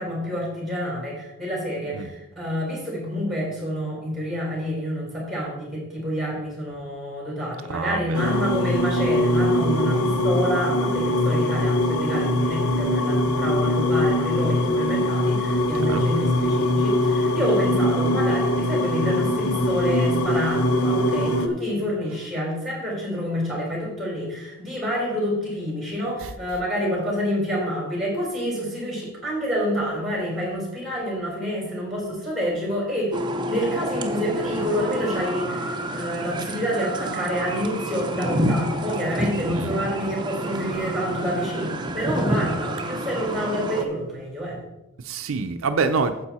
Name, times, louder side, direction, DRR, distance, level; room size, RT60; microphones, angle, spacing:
voice 1, 0.0-33.2 33.5-44.6, equal, ahead, -3 dB, 3.7 m, -28 dB
voice 2, 7.7-8.2 15.8-16.0 26.2-26.3 39.5-39.7 45.0-46.1, right 4 dB, 70° right, 8 dB, 0.5 m, -26 dB
sound 1, 8.1-21.5, left 1 dB, 90° left, 0.8 m, -22 dB
sound 2, 33.1-43.8, right 1 dB, 20° right, 0.7 m, -29 dB
9.3 x 7.6 x 4.2 m, 0.96 s
head